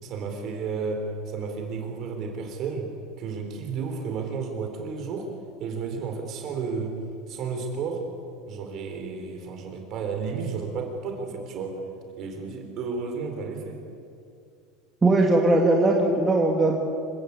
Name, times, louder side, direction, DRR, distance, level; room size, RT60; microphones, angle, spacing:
voice 1, 0.0-2.9 3.2-5.3 5.6-7.0 7.3-8.1 8.5-11.8 12.2-13.8, right 5 dB, 40° right, 3 dB, 4.4 m, -32 dB
voice 2, 15.0-16.8, right 2 dB, 10° right, 0 dB, 1.9 m, -20 dB
27.0 x 16.5 x 8.5 m, 2.4 s
cardioid pair, 165°, 0 cm